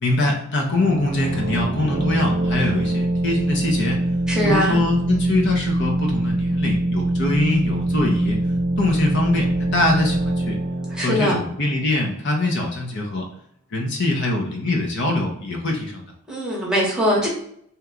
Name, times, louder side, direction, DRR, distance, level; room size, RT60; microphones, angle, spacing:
voice 1, 0.0-4.0 4.4-8.4 8.8-10.5 11.0-13.2 13.7-16.1, left 2 dB, 55° left, 1 dB, 0.6 m, -23 dB
sound 1, 0.7-12.2, right 1 dB, 60° right, 0.5 m, -23 dB
voice 2, 4.3-4.8 10.9-11.4 16.3-17.3, equal, 5° right, -4 dB, 0.9 m, -21 dB
2.9 x 2.2 x 3.6 m, 0.68 s
head